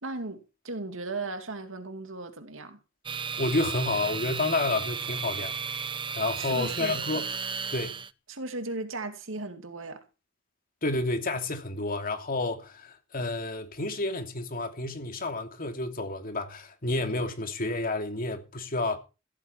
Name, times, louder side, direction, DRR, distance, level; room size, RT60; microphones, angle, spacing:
voice 1, 0.0-2.8 6.4-7.0 8.3-10.0, right 2 dB, 70° right, 2.5 m, -36 dB
sound 1, 3.0-8.1, right 6 dB, 25° right, 0.7 m, -34 dB
voice 2, 3.4-5.5 6.2-7.2 7.7-8.0 10.8-19.0, left 2 dB, 45° left, 2.8 m, -30 dB
15.5 x 14.0 x 4.6 m
head